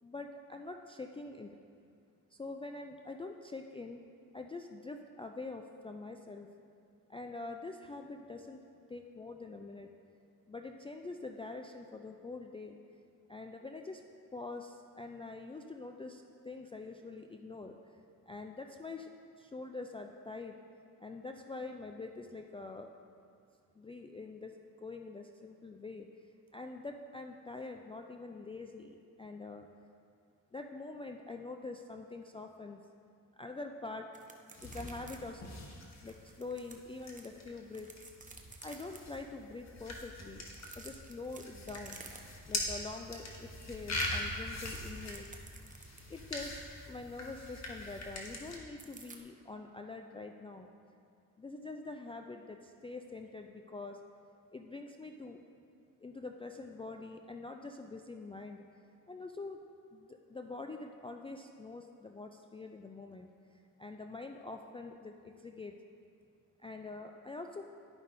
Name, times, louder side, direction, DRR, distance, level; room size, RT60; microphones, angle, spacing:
voice 1, 0.0-1.6 2.3-4.0 4.3-6.5 7.1-8.6 8.9-9.9 10.5-12.8 13.3-14.0 14.3-17.8 18.3-19.1 19.4-20.6 21.0-22.9 23.7-24.5 24.8-26.1 26.5-29.7 30.5-32.8 33.4-34.1 34.6-35.4 36.0-37.9 38.6-40.4 40.8-42.0 42.5-45.3 46.1-50.7 51.4-54.0 54.5-55.4 56.0-58.6 59.1-59.6 59.9-65.7 66.6-67.7, left 3 dB, 15° left, 3 dB, 0.3 m, -45 dB
sound 1, 34.1-35.2 35.5-35.6 36.1-37.3 37.7-39.0 40.4-42.6 42.9-43.1 43.5-46.2 48.8-49.2, right 3 dB, 20° right, 0.8 m, -53 dB
sound 2, 34.5-48.6, left 1 dB, 45° left, 1.4 m, -42 dB
11.5 x 5.3 x 2.6 m, 2.4 s
supercardioid pair, 60°, 37 cm